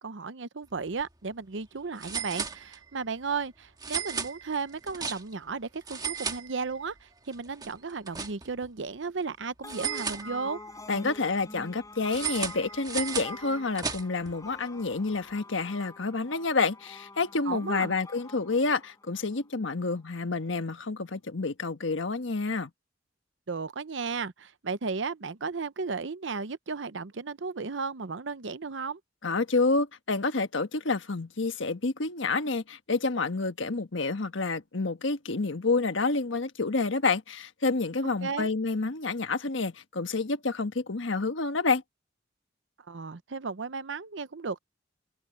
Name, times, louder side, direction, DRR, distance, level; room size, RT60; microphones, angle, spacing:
voice 1, 0.0-10.6 17.5-17.9 23.5-29.0 38.2-38.5 42.9-44.6, right 4 dB, 70° right, 0.8 m, -34 dB
sound 1, 0.8-1.0 1.3-1.4 2.0-3.0 3.8-5.5 5.8-7.0 7.3-8.7 9.7-10.8 12.1-14.3, right 6 dB, 20° right, 1.7 m, -35 dB
sound 2, 9.6-19.4, left 2 dB, 20° left, 4.9 m, -46 dB
voice 2, 10.9-22.7 29.2-41.8, left 3 dB, 85° left, 1.3 m, -29 dB
open air
head